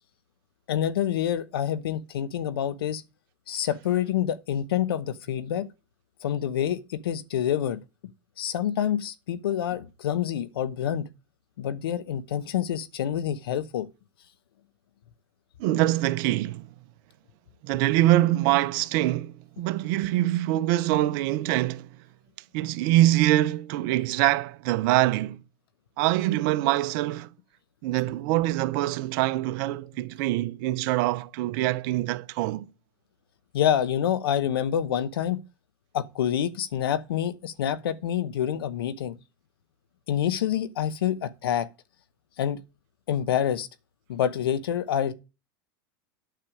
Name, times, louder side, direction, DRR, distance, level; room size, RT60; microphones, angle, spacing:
voice 1, 0.7-3.0 3.5-5.7 6.2-7.8 8.4-11.1 11.6-13.9 33.5-35.4 35.9-39.2 40.1-41.7 42.4-42.6 43.1-43.7 44.1-45.1, left 10 dB, 80° left, 0.8 m, -27 dB
voice 2, 15.6-16.7 17.6-21.9 22.5-25.4 26.0-27.3 27.8-32.6, right 15 dB, 60° right, 0.8 m, -24 dB
9.2 x 6.8 x 4.8 m
hypercardioid pair, 105°, 12 cm